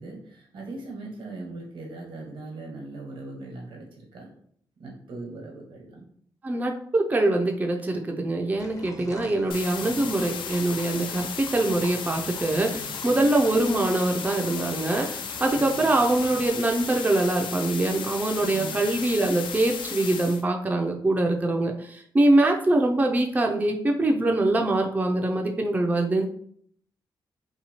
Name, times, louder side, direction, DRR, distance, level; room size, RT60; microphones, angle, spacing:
voice 1, 0.0-4.3 4.8-6.1 9.0-9.5 9.8-10.2 12.6-13.1 15.5-16.0 18.4-19.0, right 2 dB, 85° right, -1 dB, 1.1 m, -40 dB
voice 2, 6.4-26.2, right 2 dB, 20° right, 2 dB, 0.4 m, -24 dB
sound 1, 8.5-16.5, left 1 dB, 40° left, 0.7 m, -45 dB
sound 2, 9.5-20.4, left 6 dB, 70° left, 0.3 m, -35 dB
2.7 x 2.3 x 2.9 m, 0.64 s
cardioid pair, 80°, 9 cm